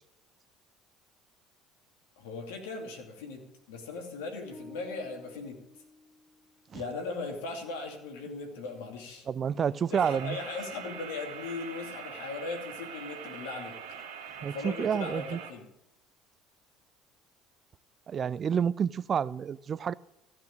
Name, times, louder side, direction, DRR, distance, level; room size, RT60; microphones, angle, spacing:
voice 1, 2.2-5.6 6.7-9.3 9.9-13.8 14.4-15.7, left 3 dB, 70° left, 2.7 m, -38 dB
sound 1, 4.5-6.7, equal, ahead, 1.8 m, -52 dB
voice 2, 9.3-10.4 14.4-15.4 18.1-19.9, right 7 dB, 40° right, 0.4 m, -29 dB
sound 2, 9.9-15.5, right 7 dB, 70° right, 1.8 m, -43 dB
15.0 x 6.3 x 8.9 m
figure-of-eight pair, 60°, 0 cm